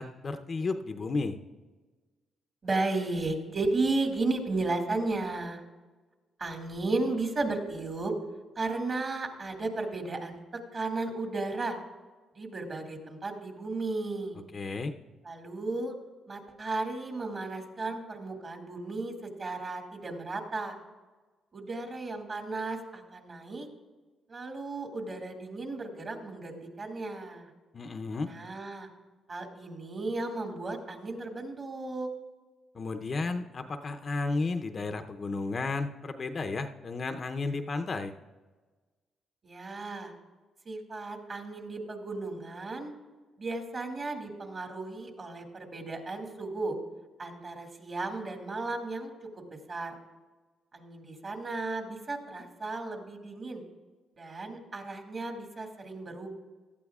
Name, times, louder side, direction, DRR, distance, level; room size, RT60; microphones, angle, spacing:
voice 1, 0.0-1.4 14.5-14.9 27.7-28.3 32.7-38.1, left 3 dB, 40° left, 7 dB, 0.7 m, -33 dB
voice 2, 2.6-5.6 6.4-8.1 8.6-10.4 10.7-11.8 12.3-14.4 15.2-15.9 16.3-20.8 21.5-23.7 24.3-27.5 28.2-28.9 29.3-32.1 39.4-40.1 40.7-42.9 43.4-46.8 47.2-50.0 50.7-53.6 54.2-56.3, right 3 dB, 40° right, 3 dB, 2.1 m, -34 dB
17.0 x 12.0 x 2.4 m, 1.3 s
cardioid pair, 90°, 0 cm